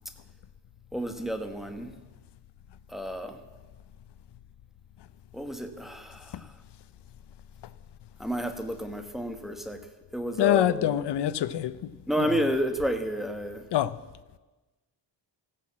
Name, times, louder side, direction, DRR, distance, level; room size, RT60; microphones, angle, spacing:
voice 1, 0.9-1.9 2.9-3.4 5.3-6.5 8.2-9.8 10.1-11.0 12.1-13.6, equal, ahead, 1.2 m, -31 dB
voice 2, 10.4-11.8 12.2-12.3 13.7-14.0, left 12 dB, 65° left, 0.6 m, -25 dB
14.5 x 10.0 x 7.3 m
wide cardioid pair, 125°, 44 cm